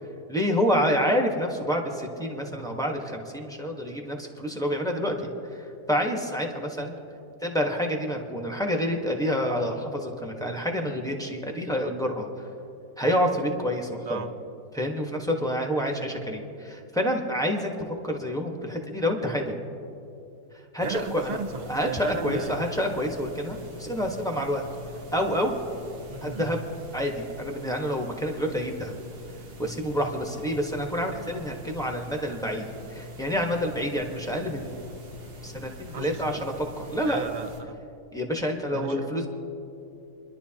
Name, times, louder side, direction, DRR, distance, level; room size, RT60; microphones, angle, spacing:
voice 1, 0.3-7.0 7.4-12.3 13.0-14.2 14.7-17.7 18.0-19.5 20.7-21.4 21.7-24.6 25.1-25.5 26.2-26.6 26.9-28.9 29.6-34.7 35.4-37.2 38.1-39.3, equal, 5° left, 1 dB, 1.0 m, -28 dB
voice 2, 20.8-22.5 26.1-26.6 35.9-36.4 37.0-37.8 38.7-39.3, right 5 dB, 60° right, 7 dB, 0.4 m, -35 dB
sound 1, 20.8-37.6, left 2 dB, 75° right, 1.8 m, -44 dB
28.5 x 11.5 x 2.9 m, 2.7 s
omnidirectional pair, 1.7 m